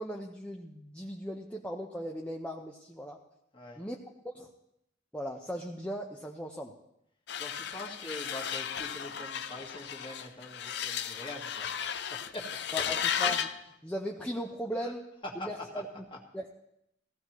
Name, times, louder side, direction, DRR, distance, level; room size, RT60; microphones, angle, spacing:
voice 1, 0.0-3.2 3.8-4.0 4.2-4.5 5.1-6.7 12.7-13.5 13.8-15.0 15.4-16.0 16.3-16.5, equal, 5° left, 0 dB, 0.6 m, -38 dB
sound 1, 7.3-13.6, left 8 dB, 60° left, 0.5 m, -34 dB
voice 2, 7.4-12.9 14.8-14.9 15.2-15.8 16.1-16.2, left 1 dB, 25° left, 0 dB, 1.8 m, -44 dB
17.5 x 14.5 x 3.1 m, 0.79 s
head